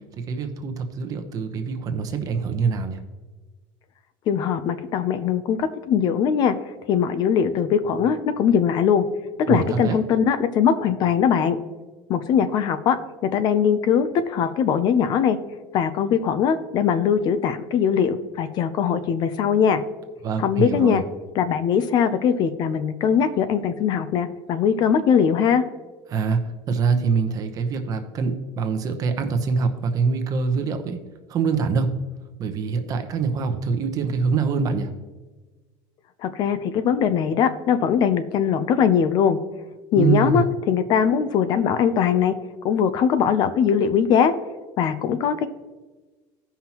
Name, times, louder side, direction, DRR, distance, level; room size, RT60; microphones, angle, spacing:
voice 1, 0.2-3.0 9.5-10.0 20.2-21.0 26.1-26.4 26.7-31.0 31.3-31.9 32.4-34.9 40.0-40.4, right 5 dB, 35° right, 7 dB, 0.9 m, -24 dB
voice 2, 4.3-6.5 6.9-9.0 9.5-11.6 12.1-13.0 13.3-15.4 15.7-19.8 20.4-21.0 21.4-25.6 36.2-39.4 39.9-42.3 42.6-44.3 44.8-45.5, left 7 dB, 40° left, 11 dB, 0.5 m, -21 dB
15.5 x 5.7 x 2.9 m, 1.3 s
cardioid pair, 165°, 11 cm